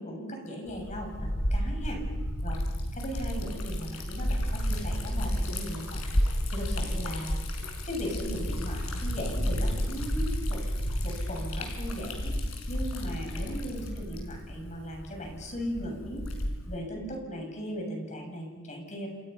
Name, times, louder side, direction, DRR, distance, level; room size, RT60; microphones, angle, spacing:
voice 1, 0.0-2.0 2.4-2.6 2.9-6.2 6.5-7.4 7.8-10.6 11.0-12.4 12.7-16.3 16.7-19.1, equal, 35° left, 2 dB, 7.7 m, -37 dB
Liquid, 0.7-16.8, equal, 90° left, 5.8 m, -32 dB
29.5 x 28.5 x 5.8 m, 1.3 s
head